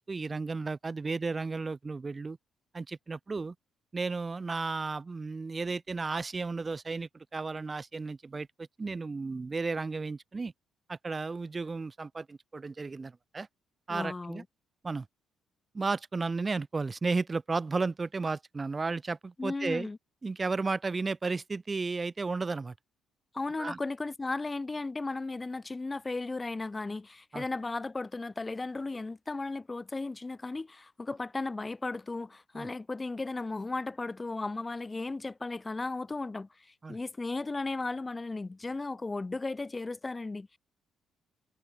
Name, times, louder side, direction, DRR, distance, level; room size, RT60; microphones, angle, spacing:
voice 1, 0.0-2.4 2.7-3.5 3.9-10.5 10.9-13.5 13.9-14.4 14.8-15.1 15.7-19.9 20.2-22.7 23.6-23.8 27.3-27.4 32.5-32.7 36.8-37.0, right 4 dB, 30° right, 0.5 m, -33 dB
voice 2, 13.9-14.4 19.4-20.0 23.3-40.6, left 3 dB, 25° left, 0.6 m, -35 dB
supercardioid pair, 55°, 0 cm